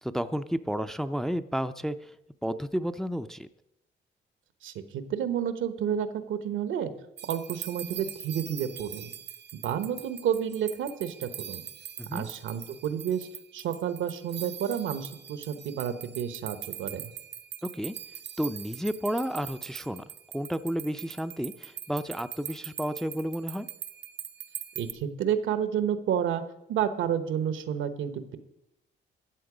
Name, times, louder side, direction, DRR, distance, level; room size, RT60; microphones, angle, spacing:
voice 1, 0.0-2.0 2.4-3.5 12.0-12.3 17.6-17.9 18.4-20.0 20.3-23.7, equal, ahead, 10 dB, 0.5 m, -31 dB
voice 2, 4.6-6.9 7.3-9.1 9.5-11.6 12.1-13.3 13.5-17.1 24.8-26.4 26.7-28.4, right 9 dB, 80° right, 11 dB, 1.1 m, -30 dB
sound 1, 7.2-24.9, right 10 dB, 60° right, 0.7 m, -42 dB
13.0 x 7.7 x 5.0 m, 0.85 s
cardioid pair, 90°, 20 cm